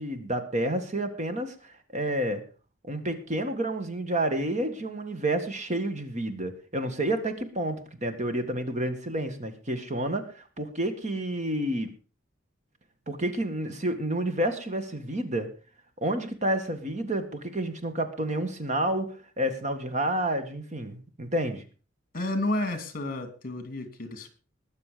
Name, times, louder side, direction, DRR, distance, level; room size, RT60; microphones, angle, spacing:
voice 1, 0.0-2.4 2.8-11.9 13.1-15.5 16.0-21.6, right 1 dB, 40° right, 8 dB, 1.8 m, -30 dB
voice 2, 22.1-24.3, left 1 dB, 45° left, 9 dB, 2.6 m, -31 dB
20.5 x 6.9 x 5.1 m, 0.36 s
head